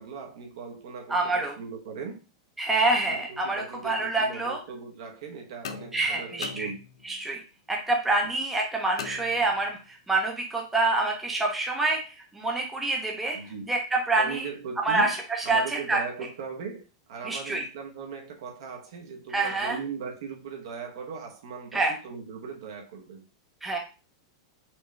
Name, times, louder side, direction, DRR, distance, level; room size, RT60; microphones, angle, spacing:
voice 1, 0.0-2.2 2.8-6.8 13.3-13.7 14.2-15.1 15.4-23.2, right 5 dB, 65° right, 0.9 m, -39 dB
voice 2, 1.1-1.5 2.6-4.6 5.9-6.7 7.0-14.5 14.8-16.0 17.2-17.6 19.3-19.8 21.7-21.9 23.6-23.8, right 2 dB, 5° right, 0.6 m, -27 dB
sound 1, 5.6-7.3 9.0-9.9, left 7 dB, 85° left, 0.5 m, -41 dB
4.3 x 2.2 x 3.1 m
supercardioid pair, 165°, 3 cm